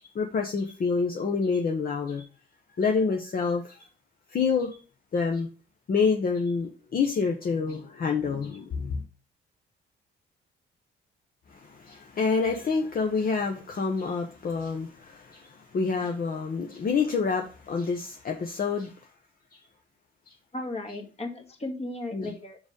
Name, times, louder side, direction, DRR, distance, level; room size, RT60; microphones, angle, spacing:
voice 1, 0.1-2.3 2.8-3.9 4.3-4.8 5.1-5.5 5.9-9.0 11.5-18.9 20.3-20.4 22.1-22.3, left 5 dB, 50° left, 1.1 m, -27 dB
voice 2, 20.5-22.6, left 2 dB, 30° left, 1.8 m, -35 dB
5.1 x 5.0 x 5.3 m
cardioid pair, 90°, 20 cm